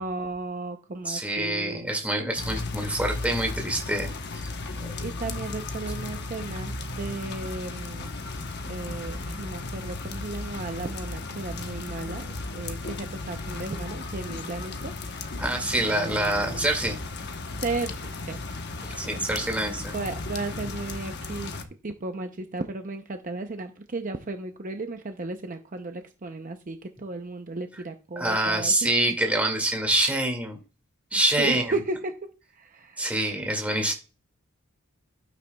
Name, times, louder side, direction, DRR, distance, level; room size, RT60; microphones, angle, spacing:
voice 1, 0.0-1.9 5.0-8.1 8.7-15.4 15.8-16.7 17.6-19.1 19.9-21.5 21.8-28.9 31.4-32.2 32.5-33.1, right 3 dB, 40° right, 6 dB, 0.6 m, -35 dB
voice 2, 1.1-4.1 4.8-4.9 15.4-17.0 18.8-19.9 28.2-30.6 31.1-31.6 33.0-33.9, right 1 dB, 5° right, 2 dB, 2.1 m, -26 dB
sound 1, 2.3-21.6, left 3 dB, 50° left, 1.0 m, -35 dB
11.5 x 9.3 x 2.3 m, 0.34 s
head